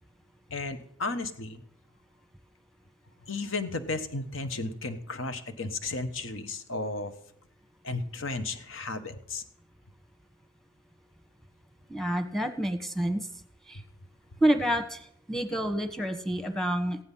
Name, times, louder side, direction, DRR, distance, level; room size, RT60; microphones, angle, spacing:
voice 1, 0.5-1.6 3.3-7.1 7.8-9.4 13.7-13.8, left 3 dB, 80° left, 9 dB, 1.3 m, -34 dB
voice 2, 11.9-13.2 13.7-13.8 14.4-17.0, right 1 dB, ahead, 7 dB, 1.2 m, -28 dB
15.5 x 10.0 x 5.7 m, 0.71 s
head